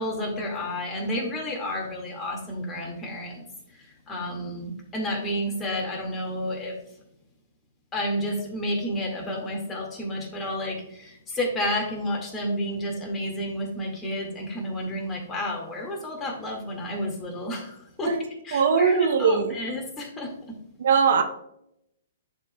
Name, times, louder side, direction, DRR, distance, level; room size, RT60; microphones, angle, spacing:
voice 1, 0.0-6.8 7.9-18.2 18.4-20.5, left 1 dB, 15° left, -1 dB, 2.0 m, -31 dB
voice 2, 18.5-19.6 20.8-21.2, right 5 dB, 65° right, 6 dB, 0.8 m, -20 dB
11.0 x 4.7 x 2.3 m, 0.78 s
hypercardioid pair, 130°, 0 cm